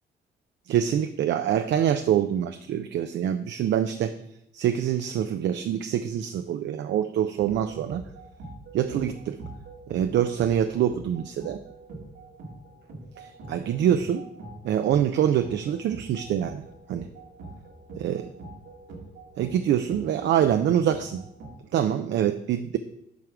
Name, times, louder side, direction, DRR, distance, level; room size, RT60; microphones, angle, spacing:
voice 1, 0.7-4.2 4.5-8.0 8.7-9.4 9.9-11.6 13.2-14.2 14.6-16.6 16.9-17.1 18.0-18.3 19.4-21.2 21.7-22.8, right 10 dB, 65° right, 9 dB, 0.5 m, -25 dB
sound 1, 7.4-21.6, right 2 dB, 90° right, 1.8 m, -44 dB
7.6 x 3.6 x 6.1 m, 0.76 s
cardioid pair, 90°, 20 cm